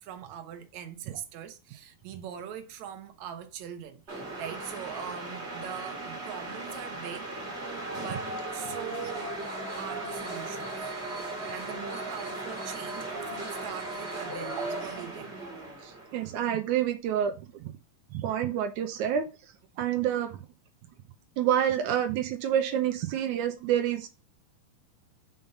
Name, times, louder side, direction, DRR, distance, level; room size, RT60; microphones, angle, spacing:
voice 1, 0.0-7.3 8.0-9.3 9.8-11.2 11.5-15.4, right 9 dB, 70° right, 1.7 m, -42 dB
piranha rampe, 4.1-16.4, right 2 dB, 25° right, 1.4 m, -37 dB
voice 2, 15.8-17.7 18.1-20.4 21.4-24.1, right 10 dB, 90° right, 1.7 m, -28 dB
5.7 x 5.0 x 6.6 m
omnidirectional pair, 4.6 m